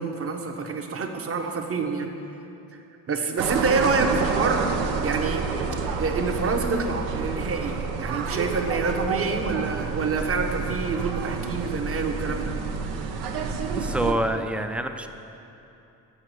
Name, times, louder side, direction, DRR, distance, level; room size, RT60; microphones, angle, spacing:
voice 1, 0.0-2.1 2.7-5.4 6.0-12.5, right 4 dB, 35° right, 4 dB, 0.8 m, -27 dB
sound 1, 3.4-14.1, right 5 dB, 85° right, 0.7 m, -29 dB
voice 2, 13.8-15.1, right 1 dB, 5° right, 7 dB, 0.4 m, -27 dB
6.6 x 5.8 x 6.2 m, 2.8 s
supercardioid pair, 70°, 39 cm